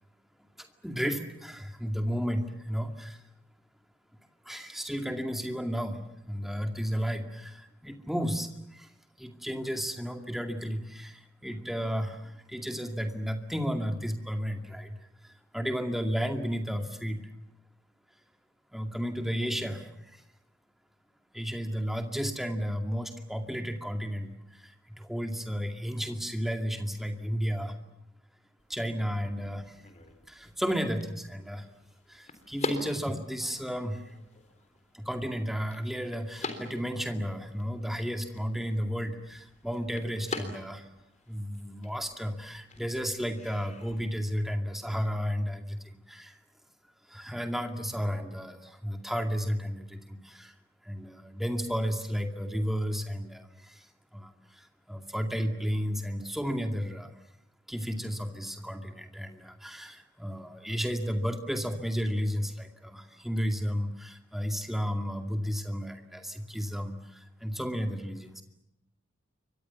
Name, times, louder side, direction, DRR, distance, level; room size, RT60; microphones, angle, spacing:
voice 1, 0.6-3.2 4.4-8.9 9.2-17.3 18.7-20.2 21.3-27.8 28.7-29.8 30.3-31.7 32.1-34.1 34.9-40.9 41.3-46.4 47.1-50.5 50.8-57.1 57.7-68.4, equal, ahead, 5 dB, 2.3 m, -33 dB
sound 1, 28.6-44.1, left 2 dB, 35° left, 3.5 m, -44 dB
29.0 x 24.5 x 7.1 m, 0.84 s
head